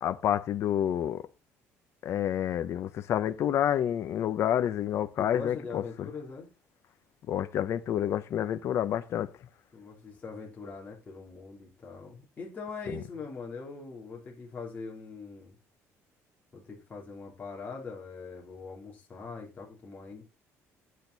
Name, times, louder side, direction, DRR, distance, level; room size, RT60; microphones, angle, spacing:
voice 1, 0.0-1.2 2.0-6.1 7.3-9.3 12.9-13.0, left 10 dB, 50° left, 0.8 m, -29 dB
voice 2, 5.2-6.5 9.7-15.6 16.5-20.2, left 4 dB, 25° left, 3.4 m, -42 dB
8.7 x 8.3 x 4.1 m
cardioid pair, 140°, 6 cm